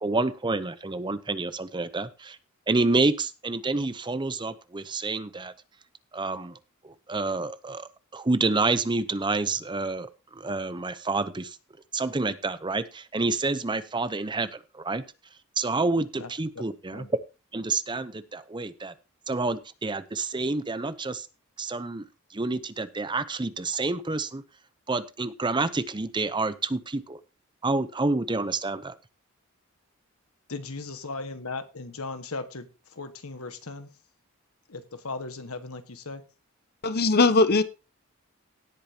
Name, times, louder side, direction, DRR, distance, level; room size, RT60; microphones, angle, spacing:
voice 1, 0.0-2.4 2.7-5.5 6.1-6.6 6.8-11.6 11.9-15.0 15.6-17.0 17.5-18.9 19.3-21.3 21.6-22.0 22.3-24.4 24.9-27.2 27.6-29.0, right 3 dB, 20° right, 14 dB, 0.7 m, -28 dB
voice 2, 30.5-33.9 34.7-36.2, left 3 dB, 90° left, 9 dB, 1.6 m, -37 dB
voice 3, 36.8-37.6, left 3 dB, 45° left, 13 dB, 0.9 m, -20 dB
17.5 x 8.5 x 2.9 m, 0.29 s
head